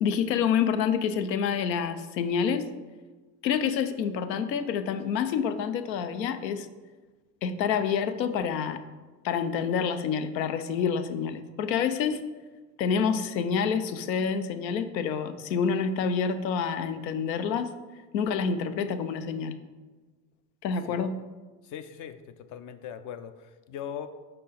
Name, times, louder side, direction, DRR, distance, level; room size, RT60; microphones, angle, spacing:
voice 1, 0.0-2.7 3.4-6.7 7.4-8.8 9.2-12.2 12.8-17.7 18.1-19.5 20.6-21.1, left 6 dB, 85° left, 10 dB, 0.6 m, -27 dB
voice 2, 21.6-24.1, left 9 dB, 40° left, 10 dB, 0.4 m, -40 dB
5.2 x 4.4 x 4.1 m, 1.3 s
hypercardioid pair, 75°, 50 cm